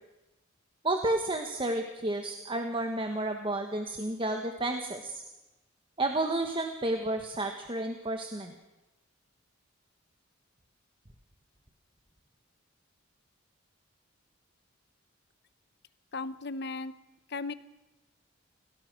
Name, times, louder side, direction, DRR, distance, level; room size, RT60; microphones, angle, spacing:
voice 1, 0.8-5.2 6.0-8.5, right 2 dB, 25° right, 4 dB, 1.5 m, -31 dB
voice 2, 16.1-16.9 17.3-17.5, left 3 dB, 55° left, 14 dB, 0.9 m, -36 dB
29.0 x 17.5 x 6.3 m, 1.1 s
head